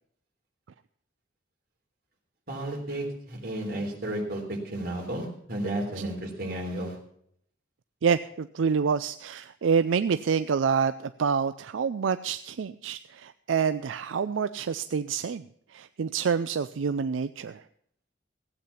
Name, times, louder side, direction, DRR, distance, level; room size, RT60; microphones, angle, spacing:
voice 1, 2.5-7.0, right 1 dB, 50° right, 1 dB, 3.5 m, -33 dB
voice 2, 8.0-15.4 15.7-17.6, right 6 dB, 85° right, 12 dB, 0.4 m, -27 dB
16.0 x 8.7 x 5.8 m, 0.67 s
head